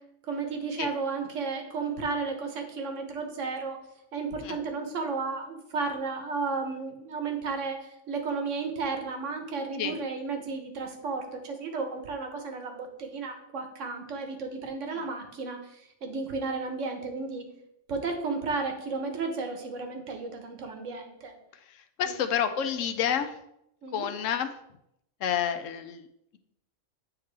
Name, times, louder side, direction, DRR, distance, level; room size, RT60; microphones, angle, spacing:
voice 1, 0.3-3.8 4.1-17.5 17.9-21.4 22.1-22.2 23.8-24.1, right 4 dB, 80° right, 5 dB, 1.3 m, -33 dB
voice 2, 21.5-23.4 23.9-24.6 25.2-26.1, left 8 dB, 85° left, 8 dB, 1.0 m, -29 dB
8.6 x 3.6 x 3.3 m, 0.78 s
omnidirectional pair, 1.3 m